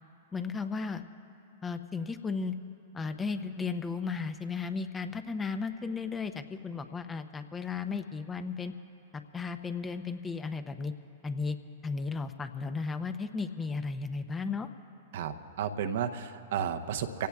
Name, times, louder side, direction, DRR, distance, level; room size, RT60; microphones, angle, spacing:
voice 1, 0.3-1.0 1.6-2.5 2.9-8.7 9.1-10.9 11.2-11.6 11.8-14.7, left 4 dB, 15° left, 9 dB, 0.7 m, -35 dB
voice 2, 15.1-17.3, right 8 dB, 65° right, 7 dB, 0.8 m, -33 dB
28.0 x 17.0 x 2.4 m, 2.8 s
hypercardioid pair, 110°, 0 cm